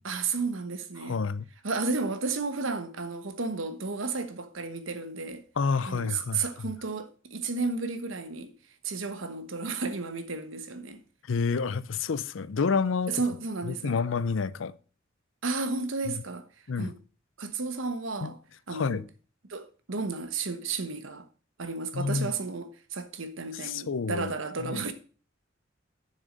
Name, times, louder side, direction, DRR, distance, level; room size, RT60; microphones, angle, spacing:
voice 1, 0.0-1.2 1.6-5.4 5.9-8.5 8.8-11.0 13.1-14.0 15.4-16.5 16.8-17.0 17.4-18.4 18.7-19.0 19.5-21.2 21.6-24.9, right 4 dB, 90° right, 1.2 m, -32 dB
voice 2, 1.0-1.4 5.6-6.5 11.3-13.1 13.7-14.7 16.7-16.9 18.2-18.3 18.7-19.0 21.9-22.3 23.6-24.3 24.6-24.9, left 5 dB, 80° left, 0.5 m, -29 dB
7.0 x 6.5 x 6.4 m
head